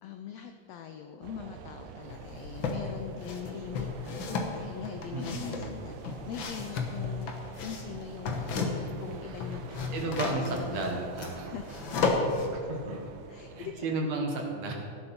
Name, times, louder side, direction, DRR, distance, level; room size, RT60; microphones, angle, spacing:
voice 1, 0.0-11.0 11.4-12.2 13.3-13.9, left 8 dB, 85° left, 6 dB, 1.4 m, -42 dB
sound 1, 1.2-13.7, right 6 dB, 80° right, 2.2 m, -46 dB
sound 2, 2.1-2.8 3.2-9.0 9.3-12.5, left 4 dB, 60° left, 1.4 m, -33 dB
voice 2, 5.1-5.8 9.7-11.5 12.5-13.0 13.5-14.7, right 2 dB, 65° right, 1 dB, 2.6 m, -33 dB
17.5 x 7.8 x 4.4 m, 2.4 s
omnidirectional pair, 3.6 m